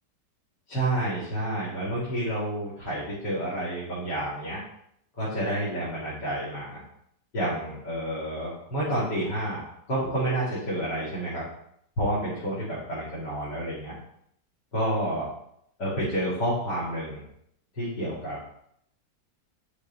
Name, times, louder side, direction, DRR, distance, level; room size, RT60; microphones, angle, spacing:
voice 1, 0.7-4.6 5.2-6.8 7.3-11.4 12.0-13.9 14.7-15.3 15.8-17.2 17.8-18.4, right 1 dB, 80° left, -10 dB, 3.4 m, -29 dB
9.9 x 5.0 x 4.1 m, 0.71 s
omnidirectional pair, 1.8 m